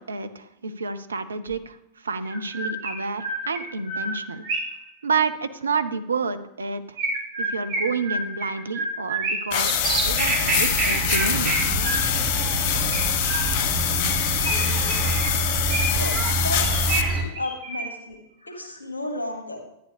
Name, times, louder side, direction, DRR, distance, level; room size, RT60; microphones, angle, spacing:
voice 1, 0.0-4.4 5.0-7.0 7.4-11.7, right 4 dB, 75° right, 10 dB, 0.6 m, -29 dB
Chirp tweet, 1.5-1.6 2.2-4.9 7.0-9.6 10.8-12.4 12.9-13.8 14.4-16.2 16.6-18.1, right 2 dB, 55° right, 4.3 m, -30 dB
sound 1, 9.5-17.0, left 9 dB, 50° left, 0.7 m, -25 dB
sound 2, 9.5-17.2, right 3 dB, 30° right, 3.1 m, -26 dB
voice 2, 15.9-19.6, left 1 dB, 75° left, 4 dB, 1.7 m, -33 dB
11.0 x 9.7 x 3.4 m, 0.80 s
figure-of-eight pair, 90°, 0 cm